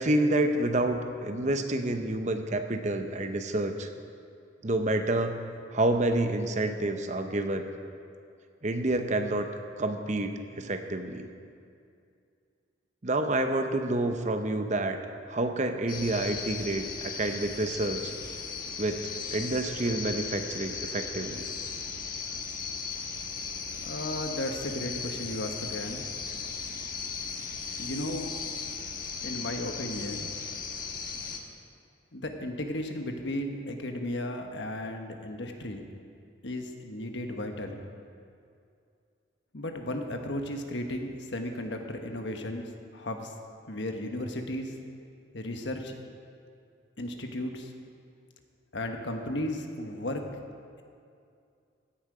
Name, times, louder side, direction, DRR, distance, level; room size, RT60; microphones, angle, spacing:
voice 1, 0.0-3.9 4.6-5.4 5.7-7.7 8.6-9.5 9.8-11.3 13.0-15.0 15.3-18.1 18.8-21.5, right 2 dB, 40° right, 7 dB, 0.8 m, -28 dB
sound 1, 15.9-31.4, left 5 dB, 45° left, 1.2 m, -37 dB
voice 2, 23.7-26.0 27.8-28.3 29.2-30.3 32.1-35.9 36.4-37.9 39.5-43.3 43.7-44.8 45.3-45.9 47.0-47.7 48.7-50.3, left 1 dB, 65° left, 4 dB, 1.3 m, -35 dB
16.0 x 10.5 x 4.9 m, 2.4 s
head